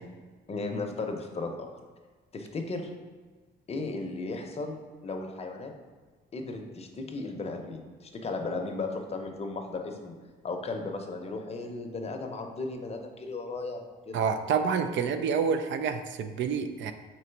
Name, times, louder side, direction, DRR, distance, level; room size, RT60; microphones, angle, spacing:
voice 1, 0.5-1.7 2.3-2.9 3.7-5.7 6.3-10.1 10.4-14.2, left 3 dB, 30° left, 3 dB, 0.6 m, -35 dB
voice 2, 14.1-16.9, right 6 dB, 70° right, 8 dB, 0.4 m, -28 dB
3.9 x 3.0 x 4.4 m, 1.4 s
cardioid pair, 90°, 20 cm